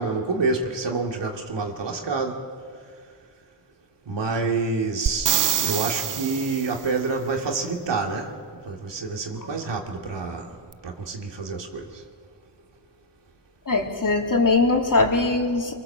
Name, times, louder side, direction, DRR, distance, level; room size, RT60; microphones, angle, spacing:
voice 1, 0.0-2.4 4.1-8.3 8.6-10.5 10.8-11.9, right 3 dB, 75° right, 2 dB, 2.9 m, -27 dB
sound 1, 5.1-6.9 10.7-10.8, right 9 dB, 45° right, 0.6 m, -25 dB
voice 2, 13.7-15.7, left 3 dB, 45° left, 1 dB, 3.5 m, -21 dB
24.5 x 24.0 x 7.5 m, 2.1 s
cardioid pair, 50°, 43 cm